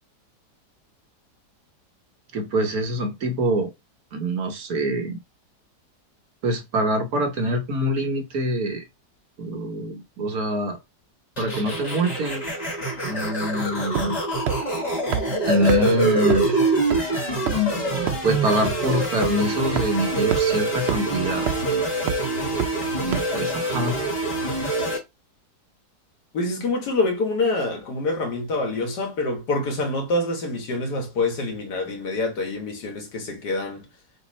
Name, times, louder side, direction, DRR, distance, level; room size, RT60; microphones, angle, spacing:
voice 1, 2.3-3.7 4.1-5.2 6.4-8.8 9.4-10.8 11.4-12.4 13.0-14.2 15.4-16.6 18.2-21.5 23.0-24.0, right 1 dB, 60° right, 1.3 m, -25 dB
sound 1, 11.4-25.0, right 1 dB, 25° left, 1.4 m, -25 dB
sound 2, 14.0-14.2 14.5-14.6 15.1-15.2 15.7-15.8 16.3-16.4 16.9-17.0 17.5-17.7 18.1-18.2 18.6-18.7 19.2-19.3 19.8-19.9 20.3-20.4 20.9-21.0 21.5-21.7 22.1-22.2 22.6-22.7 23.1-23.2, right 8 dB, 80° right, 0.5 m, -24 dB
voice 2, 26.3-33.9, left 2 dB, 70° left, 1.8 m, -26 dB
4.1 x 2.9 x 4.1 m
omnidirectional pair, 1.8 m